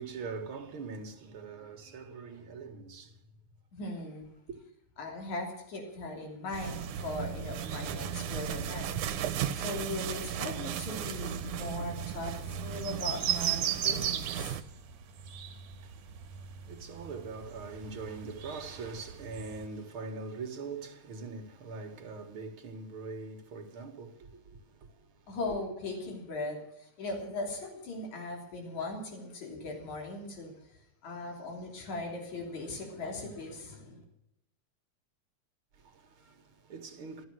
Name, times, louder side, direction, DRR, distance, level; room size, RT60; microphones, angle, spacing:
voice 1, 0.0-3.2 4.5-4.6 15.8-16.0 16.3-16.4 16.7-25.3 35.8-37.2, right 4 dB, 50° right, 2.4 m, -42 dB
voice 2, 3.7-4.3 5.0-8.9 9.5-14.6 25.3-34.0, left 2 dB, 70° left, 4.5 m, -39 dB
sound 1, 6.5-19.7, right 9 dB, 65° right, 2.8 m, -39 dB
sound 2, 6.5-14.6, right 9 dB, 85° right, 2.4 m, -36 dB
14.0 x 13.5 x 6.3 m
omnidirectional pair, 3.4 m